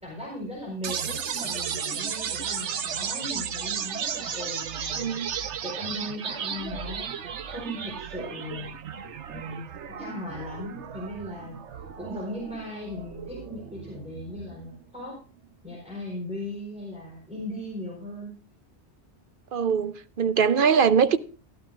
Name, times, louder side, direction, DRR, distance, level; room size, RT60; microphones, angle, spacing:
voice 1, 0.0-5.4 5.6-7.1 7.4-8.7 9.3-9.6 9.9-11.6 12.0-15.2 15.6-18.3, left 1 dB, 5° right, 4.2 m, -37 dB
sound 1, 0.8-14.8, right 7 dB, 80° right, 1.1 m, -34 dB
voice 2, 5.0-5.3 19.5-21.2, right 6 dB, 55° right, 0.8 m, -22 dB
15.5 x 12.0 x 2.4 m
omnidirectional pair, 1.2 m